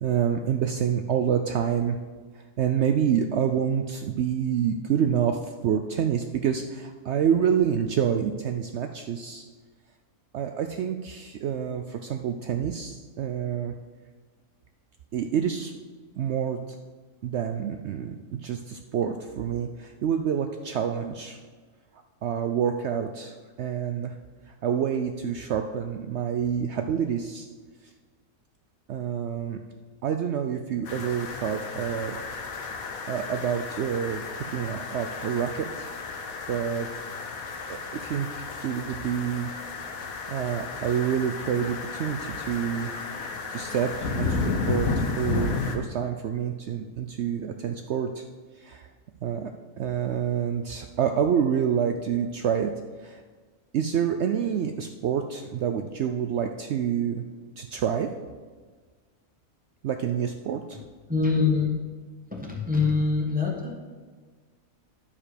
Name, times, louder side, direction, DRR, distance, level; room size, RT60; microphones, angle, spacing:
voice 1, 0.0-2.0 2.6-9.4 10.3-13.7 15.1-15.7 16.2-16.8 17.2-18.2 18.4-21.4 22.2-24.1 24.6-27.5 28.9-29.6 30.0-32.2 33.1-35.9 36.5-36.9 37.7-39.5 40.3-42.9 43.5-48.2 48.6-48.9 49.2-49.5 49.8-52.7 53.0-53.2 53.7-57.2 57.6-58.1 59.8-60.8, right 8 dB, 65° right, 6 dB, 0.7 m, -27 dB
sound 1, 30.8-45.8, left 4 dB, 80° left, 1.4 m, -33 dB
voice 2, 61.1-61.8 62.3-63.7, left 4 dB, 5° right, -2 dB, 1.3 m, -24 dB
10.0 x 6.8 x 5.0 m, 1.5 s
omnidirectional pair, 1.5 m